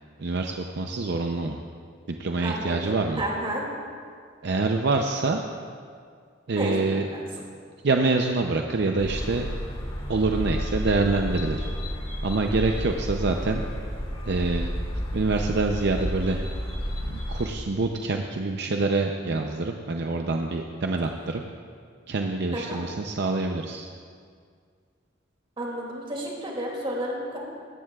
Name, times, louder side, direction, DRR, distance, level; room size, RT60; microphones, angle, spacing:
voice 1, 0.2-1.6 2.2-3.2 4.4-5.4 6.5-7.1 7.8-9.5 10.1-11.6 12.2-13.6 14.2-14.7 15.1-16.4 17.0-21.4 22.1-23.9, right 3 dB, 65° right, 3 dB, 0.6 m, -26 dB
voice 2, 2.4-3.6 6.5-7.2 22.5-22.8 25.6-27.4, right 1 dB, 30° right, -2 dB, 2.5 m, -32 dB
sound 1, 9.0-17.5, equal, 30° left, 1.8 m, -31 dB
17.5 x 14.0 x 2.4 m, 2.1 s
head